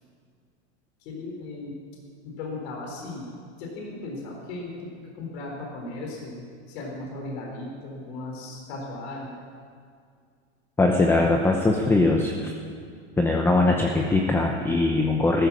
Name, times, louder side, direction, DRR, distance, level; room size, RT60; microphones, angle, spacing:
voice 1, 1.0-1.8 2.2-3.2 3.6-9.4, left 2 dB, 65° left, 0 dB, 4.3 m, -36 dB
voice 2, 10.8-12.4 13.2-15.5, left 2 dB, 5° left, 1 dB, 0.7 m, -21 dB
15.5 x 13.5 x 6.3 m, 2.2 s
supercardioid pair, 150°, 34 cm